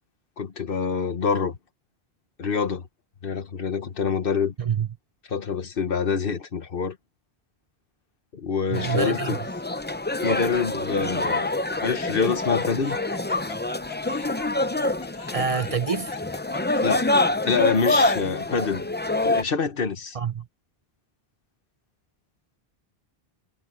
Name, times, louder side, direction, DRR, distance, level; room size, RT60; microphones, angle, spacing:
voice 1, 0.4-1.6 2.4-2.9 3.2-4.5 5.3-7.0 8.3-9.4 10.2-11.6 11.8-13.0 16.8-17.1 17.4-20.2, left 5 dB, 60° left, 1.3 m, -26 dB
sound 1, 8.7-19.4, left 2 dB, 15° left, 0.5 m, -26 dB
voice 2, 8.7-9.4 15.3-16.1 20.1-20.5, right 6 dB, 40° right, 0.7 m, -26 dB
Laughter, 9.4-9.9 10.5-10.6 11.9-17.5, left 6 dB, 90° left, 1.4 m, -43 dB
omnidirectional pair, 1.0 m